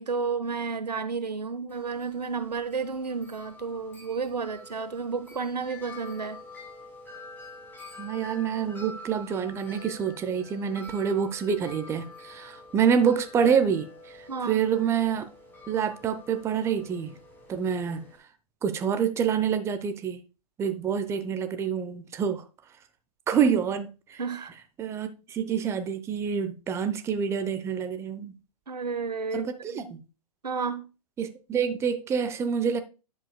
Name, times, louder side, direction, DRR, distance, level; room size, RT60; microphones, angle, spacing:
voice 1, 0.0-6.4 14.3-14.6 24.2-24.5 28.7-29.9 30.4-30.9, right 5 dB, 90° right, 1.2 m, -32 dB
Wind chime, 1.7-18.2, left 2 dB, 10° left, 2.7 m, -47 dB
voice 2, 8.0-15.3 15.7-17.2 17.5-18.0 18.6-20.2 20.6-22.4 23.3-24.2 24.8-28.3 29.3-30.0 31.2-32.8, right 7 dB, 15° right, 0.6 m, -27 dB
10.0 x 7.3 x 2.2 m
hypercardioid pair, 125°, 20 cm